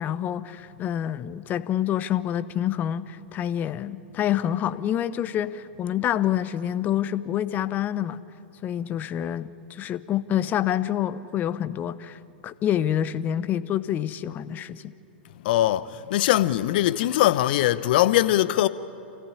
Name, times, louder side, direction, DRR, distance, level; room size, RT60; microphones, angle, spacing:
voice 1, 0.0-8.2 8.6-14.9, left 11 dB, 30° left, 0.8 m, -27 dB
voice 2, 15.4-18.7, left 14 dB, 60° left, 0.8 m, -21 dB
28.5 x 15.0 x 9.7 m
hypercardioid pair, 105°, 6 cm